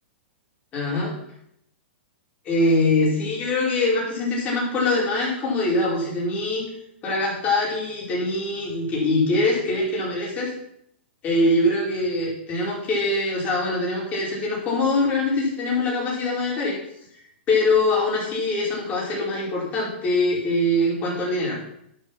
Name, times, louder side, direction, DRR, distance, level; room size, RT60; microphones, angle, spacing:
voice 1, 0.7-1.1 2.4-6.6 7.0-10.5 11.2-16.7 17.5-21.6, left 2 dB, 25° left, -4 dB, 5.3 m, -23 dB
11.0 x 7.6 x 6.0 m, 0.72 s
hypercardioid pair, 150°, 6 cm